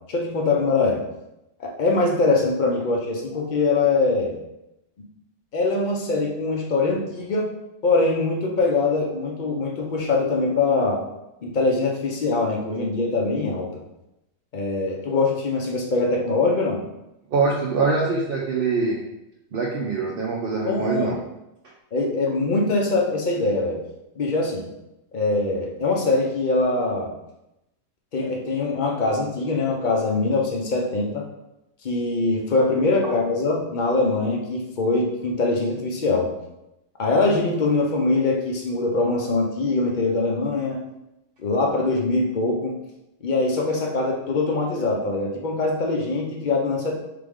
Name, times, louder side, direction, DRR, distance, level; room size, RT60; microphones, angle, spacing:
voice 1, 0.1-1.0 1.6-4.3 5.5-7.5 7.8-11.0 11.4-13.7 14.5-16.8 20.6-21.1 21.9-23.8 24.2-24.6 25.1-27.1 28.1-31.2 31.8-36.3 37.0-40.8 41.4-42.7 43.2-46.9, left 3 dB, 45° left, 0 dB, 0.6 m, -23 dB
voice 2, 17.3-19.0 19.5-21.2, right 4 dB, 55° right, -3 dB, 0.7 m, -23 dB
3.7 x 3.4 x 3.6 m, 0.89 s
omnidirectional pair, 1.5 m